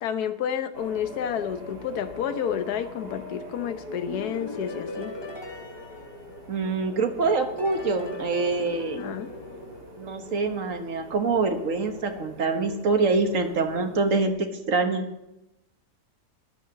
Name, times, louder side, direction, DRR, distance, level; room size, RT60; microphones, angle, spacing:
voice 1, 0.0-5.1 9.0-9.3, left 9 dB, 70° left, 9 dB, 1.4 m, -30 dB
sound 1, 0.7-14.3, right 1 dB, 80° right, 3.6 m, -43 dB
sound 2, 4.1-6.9 7.6-10.4, left 3 dB, 20° left, 0.7 m, -39 dB
voice 2, 6.5-9.0 10.0-15.0, right 3 dB, 50° right, 5 dB, 1.7 m, -25 dB
11.5 x 10.5 x 7.1 m, 0.92 s
omnidirectional pair, 1.8 m